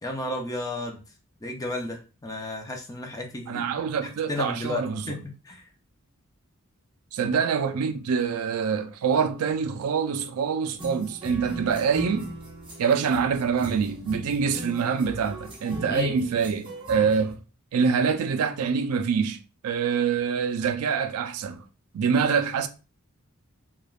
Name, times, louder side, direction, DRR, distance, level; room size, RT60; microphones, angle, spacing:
voice 1, 0.0-1.0 1.4-3.8 4.3-5.7 15.9-16.1, left 2 dB, 15° left, 0.4 m, -33 dB
voice 2, 3.5-5.0 7.1-12.3 12.8-17.4 17.7-19.4 19.6-21.6 21.9-22.7, right 6 dB, 80° right, 0.4 m, -25 dB
sound 1, 10.8-17.3, right 1 dB, 25° right, 0.6 m, -39 dB
3.3 x 2.2 x 2.3 m
head